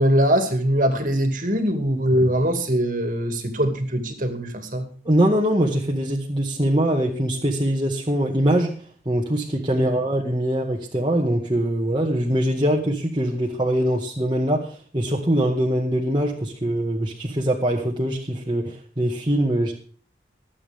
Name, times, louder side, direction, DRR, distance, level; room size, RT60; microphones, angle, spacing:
voice 1, 0.0-4.9 9.8-9.9, equal, 45° right, 6 dB, 2.4 m, -22 dB
voice 2, 5.0-8.7 9.0-19.7, right 1 dB, 25° right, -2 dB, 1.7 m, -22 dB
24.5 x 8.7 x 3.6 m, 0.42 s
head